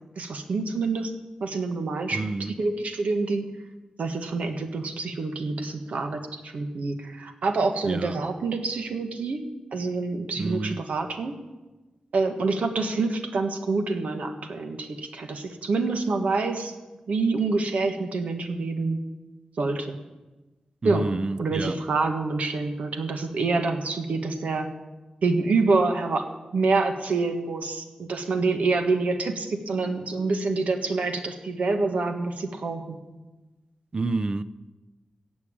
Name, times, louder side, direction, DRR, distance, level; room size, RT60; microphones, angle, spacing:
voice 1, 0.2-1.1 1.4-2.2 2.6-3.5 4.0-9.4 9.7-11.3 12.1-16.7 17.1-19.0 19.6-19.9 20.8-21.1 21.4-24.7 25.2-26.3 26.5-33.0, right 3 dB, 80° right, 1.6 m, -26 dB
voice 2, 2.1-2.6 7.8-8.2 10.4-10.8 20.8-21.8 33.9-34.4, right 3 dB, 40° right, 0.6 m, -29 dB
16.5 x 7.1 x 8.6 m
wide cardioid pair, 110°, 2 cm